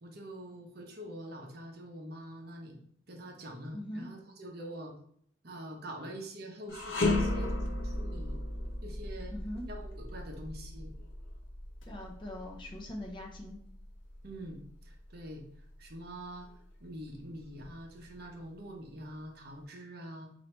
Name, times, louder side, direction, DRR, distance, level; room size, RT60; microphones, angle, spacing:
voice 1, 0.0-2.8 3.1-4.9 5.4-8.4 8.8-9.3 9.7-10.9 14.2-15.4 15.8-16.5 16.8-20.3, right 1 dB, 50° right, 1 dB, 0.7 m, -45 dB
voice 2, 3.7-4.0 9.3-9.6 11.8-13.6, left 1 dB, 25° left, 0 dB, 0.5 m, -42 dB
sound 1, 6.7-15.9 16.4-16.5 17.4-18.3, left 2 dB, 70° left, 0.7 m, -36 dB
3.2 x 2.6 x 4.3 m, 0.64 s
head